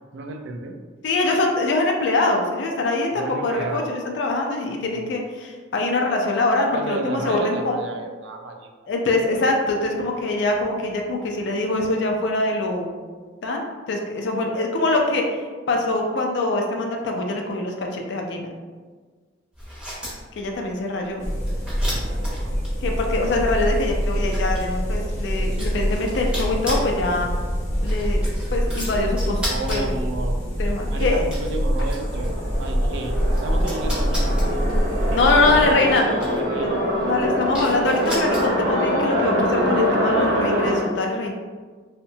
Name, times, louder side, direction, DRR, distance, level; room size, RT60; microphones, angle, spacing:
voice 1, 0.1-0.8 3.1-3.9 4.9-5.2 6.7-8.7 21.9-22.5 29.5-30.4 30.7-33.2 33.4-34.6 35.4-37.2, right 3 dB, 65° right, 3 dB, 0.3 m, -33 dB
voice 2, 1.0-7.8 8.9-12.9 13.4-18.5 20.4-21.3 22.8-27.3 27.8-28.2 28.5-29.4 29.7-29.9 30.6-31.3 35.1-36.1 36.6-36.7 37.1-41.3, left 2 dB, 60° left, 1 dB, 0.4 m, -23 dB
sound 1, 19.5-38.8, equal, 5° right, 0.6 m, -37 dB
sound 2, 21.2-35.7, equal, 35° left, 0.7 m, -25 dB
sound 3, 31.5-40.8, equal, 85° right, 0.8 m, -24 dB
2.7 x 2.1 x 2.6 m, 1.5 s
head